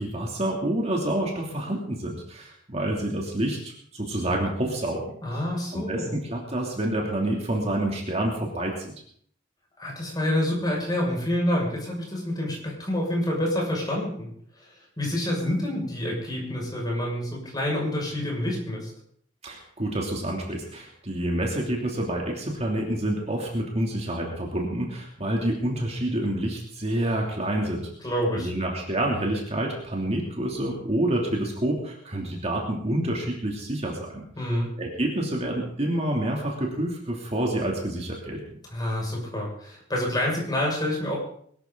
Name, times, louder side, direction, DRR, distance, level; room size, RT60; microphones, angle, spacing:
voice 1, 0.0-5.1 5.7-8.9 19.4-27.9 28.3-34.2 34.8-38.4, right 1 dB, 35° right, -1 dB, 3.0 m, -28 dB
voice 2, 5.2-6.1 9.8-14.3 14.6-14.7 15.0-18.9 28.0-28.5 34.4-34.7 38.7-41.2, left 1 dB, 20° left, -2 dB, 6.4 m, -27 dB
22.5 x 13.5 x 4.0 m, 0.62 s
head